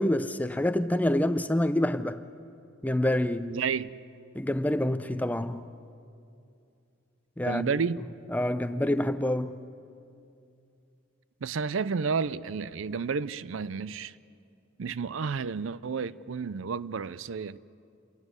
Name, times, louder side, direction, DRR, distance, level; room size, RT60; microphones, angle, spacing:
voice 1, 0.0-2.2 2.8-3.6 4.3-5.6 7.4-7.7 8.3-9.6, left 1 dB, 10° left, 0.5 m, -27 dB
voice 2, 3.5-4.0 7.4-8.0 11.4-14.1 14.8-17.6, right 5 dB, 70° right, 0.5 m, -31 dB
28.0 x 14.5 x 9.7 m
head